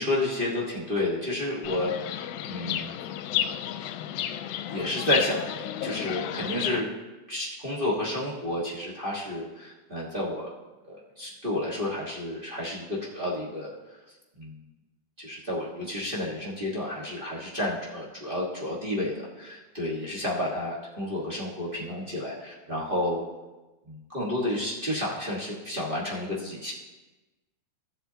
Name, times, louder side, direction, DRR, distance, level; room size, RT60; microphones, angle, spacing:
voice 1, 0.0-2.9 4.7-5.4 5.8-6.9 7.3-10.5 10.9-13.7 14.4-14.5 15.2-23.2 23.9-26.7, left 1 dB, 50° right, -5 dB, 0.6 m, -31 dB
Chirp tweet, 1.6-6.8, left 11 dB, 80° left, 1.9 m, -32 dB
16.5 x 7.9 x 2.8 m, 1.1 s
omnidirectional pair, 3.6 m